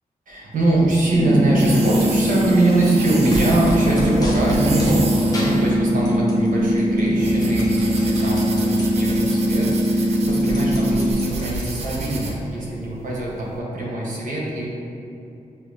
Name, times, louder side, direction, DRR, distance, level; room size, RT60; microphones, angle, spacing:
voice 1, 0.3-14.7, right 2 dB, 70° right, -5 dB, 1.0 m, -23 dB
sound 1, 0.6-13.5, right 2 dB, 50° right, 0.5 m, -32 dB
sound 2, 1.1-11.1, equal, 5° left, 1.3 m, -20 dB
sound 3, 3.3-5.0 5.3-6.5 6.8-8.8 9.3-9.4 9.6-12.0, equal, 25° left, 0.7 m, -31 dB
6.7 x 2.7 x 2.7 m, 2.7 s
wide cardioid pair, 175°, 14 cm